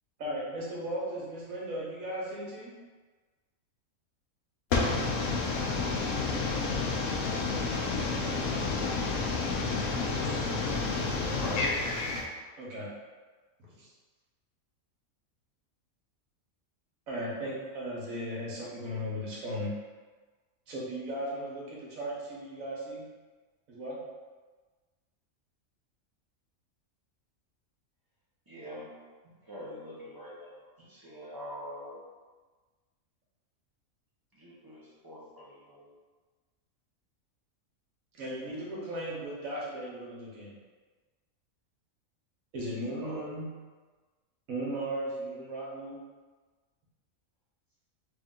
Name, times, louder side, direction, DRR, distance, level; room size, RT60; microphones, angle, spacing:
voice 1, 0.2-2.8 12.6-12.9 13.7-13.9 17.1-19.7 20.7-23.0 23.7-24.0 38.1-40.5 42.5-43.5 44.5-46.0, right 1 dB, 80° right, -5 dB, 1.5 m, -36 dB
voice 2, 4.7-12.2, left 3 dB, 70° left, -2 dB, 1.0 m, -30 dB
voice 3, 11.2-11.8 28.5-29.0 29.4-32.0 34.3-35.9 43.0-43.3, equal, 25° right, -7 dB, 0.5 m, -43 dB
3.3 x 2.7 x 3.6 m, 1.4 s
omnidirectional pair, 1.4 m